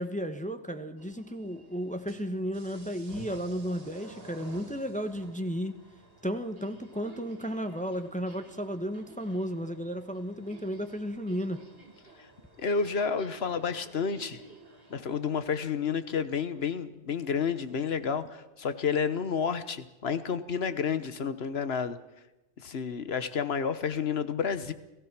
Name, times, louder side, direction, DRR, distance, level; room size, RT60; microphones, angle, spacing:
voice 1, 0.0-5.8 6.2-11.6, equal, 5° left, 7 dB, 1.1 m, -34 dB
sound 1, 1.0-15.4, right 2 dB, 55° right, 2.7 m, -52 dB
voice 2, 12.6-14.4 14.9-22.0 22.6-24.7, left 6 dB, 60° left, 12 dB, 1.4 m, -30 dB
29.5 x 16.0 x 6.1 m, 1.0 s
omnidirectional pair, 1.2 m